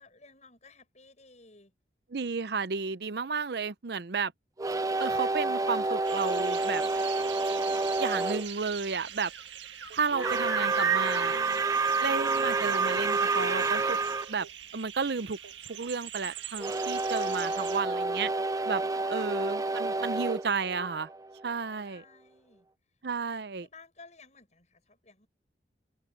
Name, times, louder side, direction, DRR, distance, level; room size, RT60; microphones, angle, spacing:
voice 1, 0.0-1.7 13.5-14.1 21.4-23.0 23.6-25.3, left 3 dB, 40° left, 6.6 m, -57 dB
voice 2, 2.1-4.3 5.0-6.8 8.0-9.3 9.9-11.6 12.0-14.0 14.3-14.5 14.7-15.4 15.7-18.3 18.6-18.8 19.1-21.1 21.4-22.0 23.0-23.7, right 5 dB, 60° right, 0.6 m, -32 dB
sound 1, 4.6-8.4 10.1-14.3 16.6-21.4, right 3 dB, 20° right, 0.4 m, -29 dB
sound 2, 6.0-17.8, right 9 dB, 85° right, 1.7 m, -40 dB
head